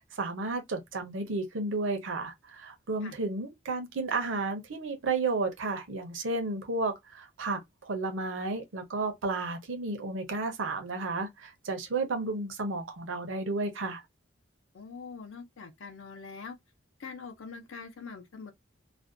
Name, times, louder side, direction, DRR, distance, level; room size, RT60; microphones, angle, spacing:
voice 1, 0.1-14.0, right 3 dB, 75° right, 0.6 m, -32 dB
voice 2, 14.7-16.6 17.0-18.5, left 5 dB, 80° left, 0.5 m, -43 dB
2.4 x 2.1 x 2.5 m
head